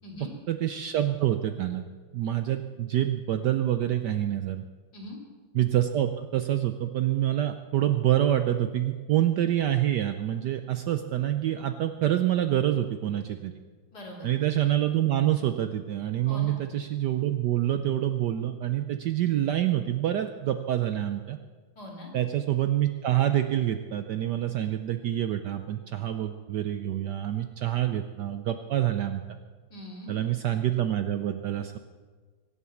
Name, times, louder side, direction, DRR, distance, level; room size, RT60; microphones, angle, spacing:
voice 1, 0.5-1.8 2.1-4.6 5.5-13.5 14.2-21.4 22.1-29.2 30.1-31.8, right 12 dB, 70° right, 8 dB, 1.1 m, -26 dB
voice 2, 13.9-14.3 16.3-16.6 21.8-22.1 29.7-30.2, left 1 dB, 50° left, -2 dB, 4.1 m, -41 dB
24.0 x 8.2 x 7.1 m, 1.5 s
omnidirectional pair, 2.3 m